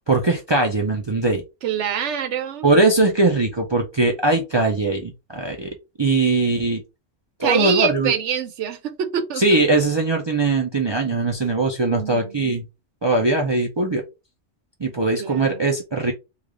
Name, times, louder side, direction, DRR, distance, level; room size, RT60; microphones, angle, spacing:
voice 1, 0.1-1.4 2.6-6.8 7.4-8.1 9.4-12.6 13.0-14.0 14.8-16.1, right 3 dB, 45° right, 0.3 m, -20 dB
voice 2, 1.6-2.7 7.4-9.4 11.9-12.5 15.2-15.7, right 8 dB, 70° right, 0.9 m, -25 dB
3.3 x 2.4 x 3.7 m
omnidirectional pair, 1.3 m